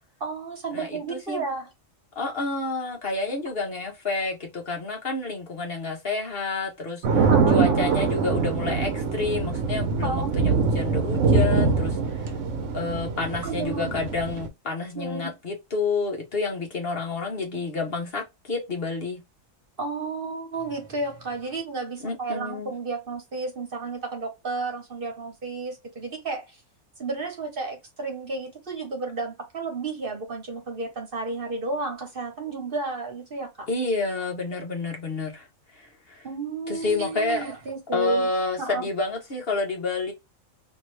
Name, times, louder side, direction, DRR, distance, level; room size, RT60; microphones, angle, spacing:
voice 1, 0.2-1.7 7.3-8.1 10.0-10.3 13.4-14.0 15.0-15.3 19.8-26.6 27.0-33.7 36.2-38.3 38.6-38.9, right 3 dB, 45° right, 1.1 m, -32 dB
voice 2, 0.7-1.4 2.1-12.3 12.7-19.2 22.0-22.7 33.7-35.5 35.7-36.3 36.7-37.5 37.9-40.1, left 3 dB, 50° left, 1.1 m, -29 dB
sound 1, 7.0-14.5, right 4 dB, 70° right, 1.1 m, -23 dB
2.9 x 2.7 x 3.2 m
omnidirectional pair, 1.4 m